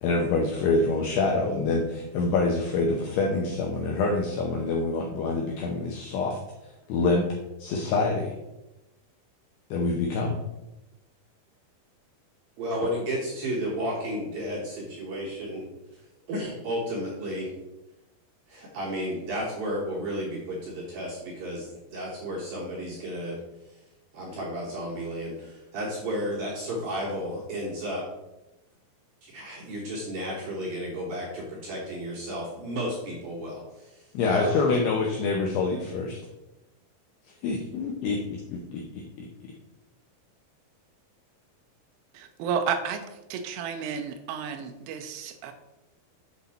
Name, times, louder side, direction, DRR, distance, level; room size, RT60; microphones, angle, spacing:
voice 1, 0.0-6.4 6.9-7.3 7.6-8.3 9.7-10.4 34.1-36.2 37.4-38.2 38.5-39.5, left 3 dB, 85° left, 1 dB, 2.3 m, -26 dB
voice 2, 12.6-15.7 15.9-17.5 18.5-23.4 23.7-23.8 24.1-28.1 29.2-34.7, equal, 75° right, -3 dB, 2.2 m, -33 dB
voice 3, 42.1-43.0 43.3-45.5, right 7 dB, 90° right, 7 dB, 3.2 m, -31 dB
8.1 x 5.9 x 4.2 m, 0.99 s
omnidirectional pair, 5.7 m